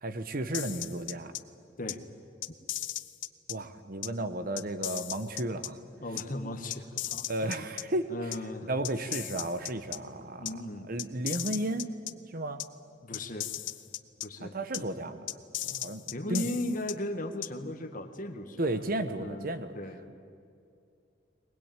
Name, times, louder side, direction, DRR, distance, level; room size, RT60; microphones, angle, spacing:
voice 1, 0.0-1.3 3.5-5.8 7.3-8.3 8.7-10.5 10.9-11.9 12.3-12.6 14.4-15.3 15.6-16.5 18.6-19.8, right 1 dB, 50° right, 11 dB, 1.0 m, -33 dB
sound 1, 0.5-1.4 1.9-2.0 2.4-3.5 4.0-4.1 4.6-5.7 6.2-6.3 6.7-7.8 8.3-8.4 8.8-10.0 10.4-10.5 11.0-12.1 12.6-12.7 13.1-14.3 14.7-14.8 15.3-16.9 17.4-17.5, left 14 dB, 75° left, 0.7 m, -36 dB
voice 2, 6.0-7.7 8.1-8.7 10.4-10.9 13.0-13.5 14.2-14.9 16.1-18.8 19.2-19.5 19.7-20.1, left 1 dB, 45° left, 7 dB, 1.5 m, -37 dB
21.5 x 20.0 x 9.0 m, 2.5 s
head